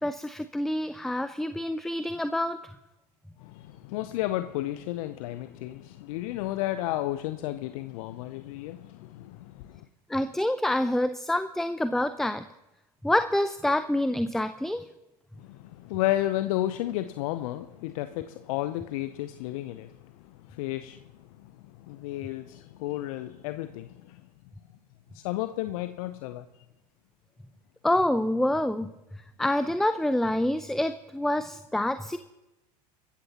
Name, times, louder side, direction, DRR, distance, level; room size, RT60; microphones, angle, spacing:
voice 1, 0.0-2.6 10.1-12.4 13.0-14.8 27.8-28.9 29.4-32.2, left 1 dB, ahead, 0.5 m, -27 dB
voice 2, 3.4-9.9 15.4-24.2 25.1-26.5, left 15 dB, 55° left, 0.7 m, -33 dB
26.0 x 14.5 x 2.9 m
figure-of-eight pair, 80°, 21 cm